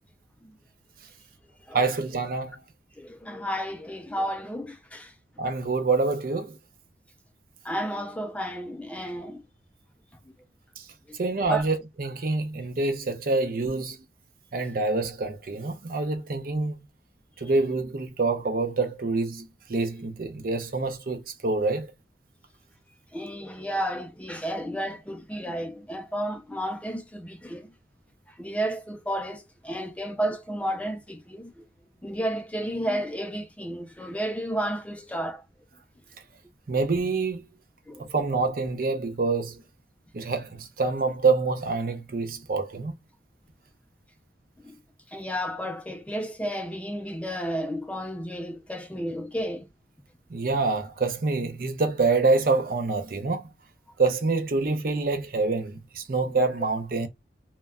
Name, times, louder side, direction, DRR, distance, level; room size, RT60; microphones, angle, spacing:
voice 1, 1.7-2.5 5.4-6.6 10.8-10.9 11.2-14.0 14.5-16.7 17.4-21.9 36.7-37.5 38.1-39.6 40.1-42.9 50.3-53.4 54.0-57.1, right 3 dB, 50° right, 0.5 m, -26 dB
voice 2, 3.0-5.1 7.6-9.4 11.5-11.6 23.1-27.7 28.4-31.6 32.0-35.4 37.9-38.1 44.6-44.8 45.1-49.7, equal, 5° left, 0.3 m, -32 dB
2.2 x 2.1 x 3.5 m
head